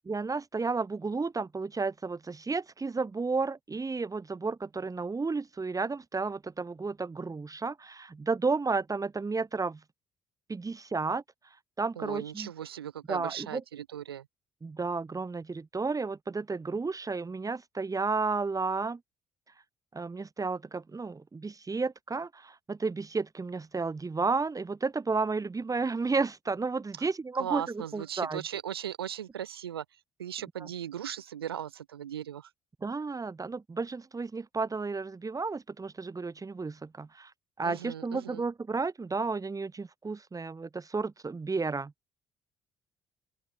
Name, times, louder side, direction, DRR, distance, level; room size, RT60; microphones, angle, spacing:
voice 1, 0.1-9.8 10.5-11.2 11.8-12.5 13.1-13.6 14.6-19.0 19.9-28.4 30.6-30.7 32.8-37.3 37.6-41.9, right 4 dB, 30° right, 5.9 m, -32 dB
voice 2, 12.0-14.3 27.0-27.1 27.4-32.5 37.6-38.4, right 10 dB, 85° right, 2.2 m, -38 dB
open air
figure-of-eight pair, 50°, 12 cm